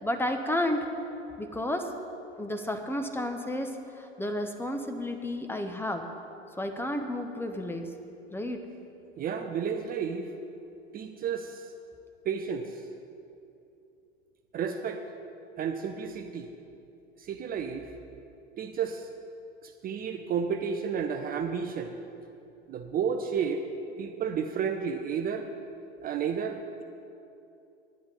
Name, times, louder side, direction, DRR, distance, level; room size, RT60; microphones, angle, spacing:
voice 1, 0.0-0.9 1.4-1.9 2.4-6.0 6.6-7.9 8.3-8.6, left 1 dB, 5° left, 5 dB, 0.8 m, -31 dB
voice 2, 9.2-10.3 10.9-11.7 12.3-12.9 14.5-15.0 15.6-16.5 17.2-17.9 18.6-19.1 19.6-22.0 22.7-23.6 24.0-25.5 26.0-26.8, right 6 dB, 25° right, 5 dB, 0.6 m, -32 dB
10.5 x 10.5 x 5.5 m, 2.7 s
figure-of-eight pair, 85°, 34 cm